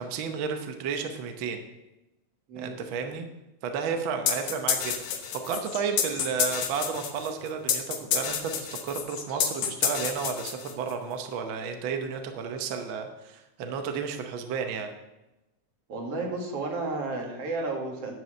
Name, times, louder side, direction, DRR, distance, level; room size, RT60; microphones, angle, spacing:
voice 1, 0.0-1.6 2.6-3.3 3.6-14.9, right 6 dB, 75° right, 6 dB, 1.1 m, -32 dB
sound 1, 4.3-11.0, left 8 dB, 70° left, 2.1 m, -29 dB
voice 2, 15.9-18.2, right 3 dB, 55° right, 0 dB, 2.7 m, -32 dB
10.5 x 4.8 x 7.6 m, 0.97 s
omnidirectional pair, 3.4 m